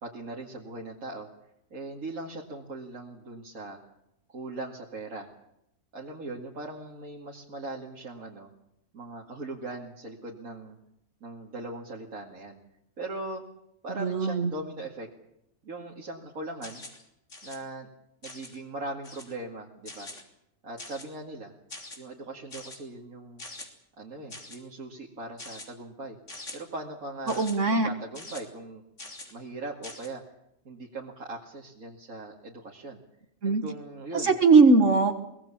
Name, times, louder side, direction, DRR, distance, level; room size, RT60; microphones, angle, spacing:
voice 1, 0.0-1.3 1.7-3.8 4.3-5.3 5.9-8.5 8.9-10.8 11.2-12.6 13.0-13.4 13.8-15.1 15.6-16.8 17.4-17.9 18.2-20.1 20.6-21.5 22.0-23.4 24.0-26.2 26.5-28.8 29.3-30.2 30.6-33.0 33.4-34.3, right 2 dB, 85° right, -2 dB, 2.8 m, -39 dB
voice 2, 14.0-14.5 27.3-27.9 33.4-33.6 34.1-35.2, right 4 dB, 60° right, 6 dB, 1.8 m, -20 dB
sound 1, 16.6-17.0 17.3-17.6 18.2-18.6 19.0-19.4 19.9-20.2 20.8-21.2 21.7-22.0 22.5-22.8 23.4-23.7 24.3-24.6 25.4-25.7 26.3-26.6 27.3-27.6 28.1-28.4 29.0-29.3 29.8-30.1, left 2 dB, 60° left, 3.7 m, -43 dB
23.5 x 20.0 x 7.3 m, 0.82 s
omnidirectional pair, 1.4 m